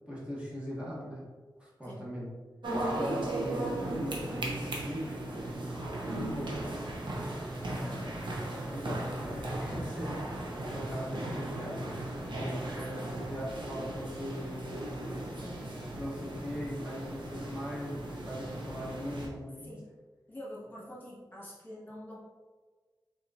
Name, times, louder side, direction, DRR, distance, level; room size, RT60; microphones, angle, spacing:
voice 1, 0.1-1.2 1.6-2.3 3.0-6.8 7.7-8.3 8.7-15.5 15.9-19.8, equal, 15° right, -7 dB, 1.2 m, -40 dB
sound 1, 2.6-19.3, right 1 dB, 80° right, 0.8 m, -37 dB
voice 2, 20.3-22.2, left 1 dB, 25° left, -7 dB, 1.5 m, -46 dB
4.4 x 3.7 x 2.7 m, 1.4 s
wide cardioid pair, 100°, 8 cm